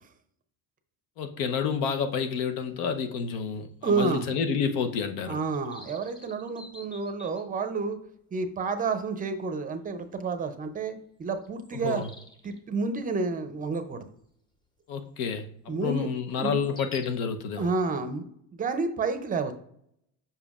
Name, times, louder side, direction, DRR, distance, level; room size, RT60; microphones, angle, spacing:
voice 1, 1.2-5.4 11.8-12.1 14.9-17.7, left 6 dB, 85° left, 0.8 m, -29 dB
sound 1, 2.3-4.0 4.3-4.4 4.8-4.9 5.2-7.8 8.5-8.6 9.0-9.2 9.6-9.8 10.7-10.8 11.2-12.6 13.7-14.0 14.4-14.5 16.4-17.1, left 1 dB, 15° left, 0.7 m, -50 dB
voice 2, 3.8-4.3 5.3-8.0 8.3-12.0 12.4-14.0 15.7-16.1 16.4-16.5 17.6-18.3 18.5-19.5, right 4 dB, 25° right, 0.5 m, -30 dB
7.1 x 5.5 x 2.4 m
cardioid pair, 145°, 35 cm